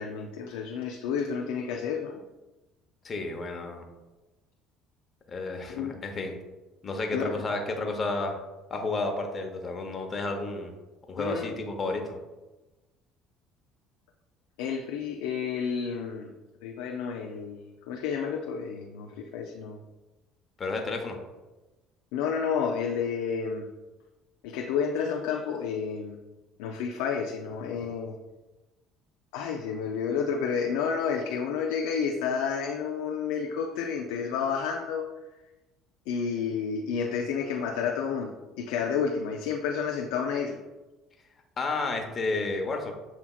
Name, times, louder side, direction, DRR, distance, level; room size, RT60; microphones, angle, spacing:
voice 1, 0.0-2.2 5.7-6.0 7.1-7.4 11.2-11.5 14.6-16.3 16.6-19.8 22.1-23.7 24.4-26.2 26.6-28.2 29.3-35.1 36.1-40.6, left 6 dB, 80° left, 1 dB, 0.4 m, -30 dB
voice 2, 3.0-3.8 5.3-6.3 6.8-8.4 8.7-10.7 11.1-12.2 20.6-21.2 41.6-42.9, left 3 dB, 35° left, 3 dB, 0.9 m, -31 dB
7.3 x 2.8 x 2.4 m, 1.1 s
hypercardioid pair, 65°, 0 cm